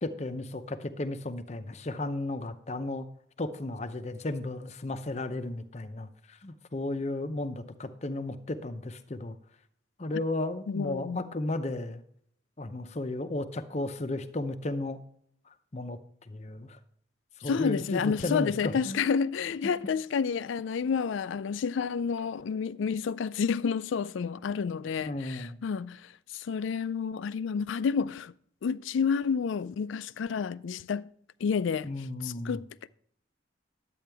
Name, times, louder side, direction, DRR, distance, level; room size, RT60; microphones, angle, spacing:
voice 1, 0.0-3.1 3.4-9.4 10.0-12.0 12.6-15.0 15.7-16.0 16.3-16.8 17.4-19.0 25.1-25.6 31.8-32.6, left 2 dB, 35° left, 0.6 m, -34 dB
voice 2, 10.7-11.3 17.4-28.3 28.6-31.1 31.4-31.9 32.2-32.9, left 6 dB, 70° left, 0.3 m, -30 dB
10.5 x 8.5 x 3.4 m
head